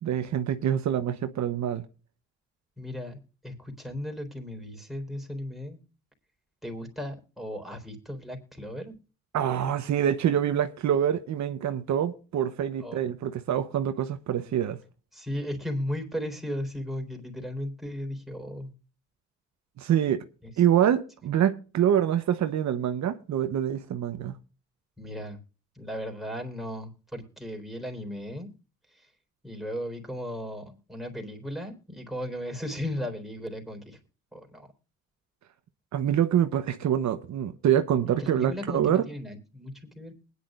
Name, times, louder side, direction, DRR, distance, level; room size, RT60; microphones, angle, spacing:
voice 1, 0.0-1.8 9.3-14.8 19.8-20.2 20.6-24.3 35.9-39.0, right 10 dB, 65° right, 1.0 m, -25 dB
voice 2, 2.8-5.8 6.6-9.0 12.8-13.0 15.1-18.7 20.4-20.5 25.0-25.4 25.7-28.5 28.9-29.1 29.4-34.0 34.3-34.7 38.2-40.1, equal, ahead, 3.9 m, -36 dB
20.5 x 10.0 x 2.5 m
cardioid pair, 90°, 30 cm